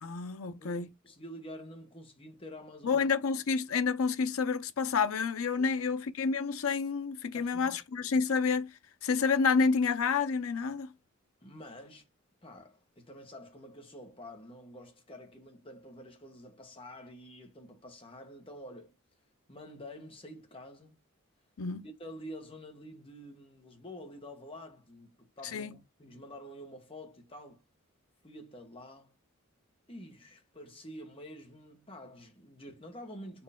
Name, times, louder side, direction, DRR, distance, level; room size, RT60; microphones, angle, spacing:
voice 1, 0.0-0.9 2.8-8.7 9.0-10.9 21.6-21.8 25.5-25.7, left 5 dB, 85° left, 0.5 m, -29 dB
voice 2, 0.6-3.1 5.6-5.7 7.3-8.1 11.4-12.0 12.4-18.9 19.5-21.0 21.8-27.6 28.2-29.1 29.9-33.4, equal, 25° left, 1.3 m, -48 dB
4.4 x 3.0 x 3.5 m
head